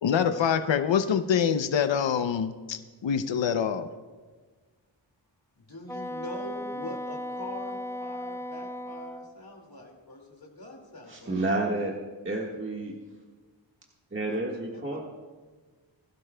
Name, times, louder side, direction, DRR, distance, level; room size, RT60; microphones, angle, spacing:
voice 1, 0.0-3.9, left 7 dB, 75° left, 9 dB, 0.7 m, -25 dB
voice 2, 5.6-11.4 14.3-15.0, left 1 dB, 50° left, 0 dB, 2.3 m, -43 dB
Wind instrument woodwind instrument, 5.9-9.3, left 1 dB, 5° left, 0.5 m, -36 dB
voice 3, 11.1-11.9 12.2-13.0 14.1-15.0, right 2 dB, 25° right, -1 dB, 1.6 m, -30 dB
21.0 x 12.5 x 2.2 m, 1.4 s
wide cardioid pair, 50°, 46 cm